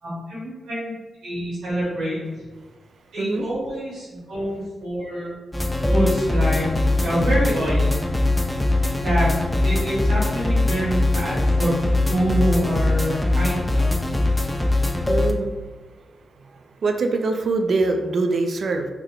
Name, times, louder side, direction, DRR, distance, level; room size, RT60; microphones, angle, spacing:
voice 1, 0.0-0.9 1.2-2.4 3.1-5.3 5.9-6.7 7.0-8.0 8.9-9.3 9.6-14.0, equal, 85° right, -10 dB, 1.2 m, -26 dB
voice 2, 3.2-3.5 15.1-15.6 16.4-18.9, right 3 dB, 65° right, 5 dB, 0.4 m, -24 dB
sound 1, 5.5-15.3, left 2 dB, 15° left, 0.4 m, -21 dB
3.4 x 2.1 x 3.7 m, 1.2 s
cardioid pair, 55°, 0 cm